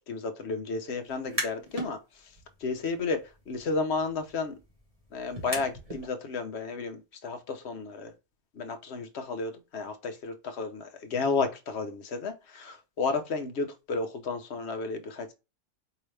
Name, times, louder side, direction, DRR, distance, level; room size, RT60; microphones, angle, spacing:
voice 1, 0.1-2.0 2.6-3.2 3.5-4.6 5.1-8.1 8.6-15.3, left 4 dB, 70° left, 1.0 m, -32 dB
sound 1, 1.1-1.9 2.3-6.1, equal, 30° right, 1.3 m, -39 dB
4.7 x 2.9 x 3.3 m
omnidirectional pair, 1.2 m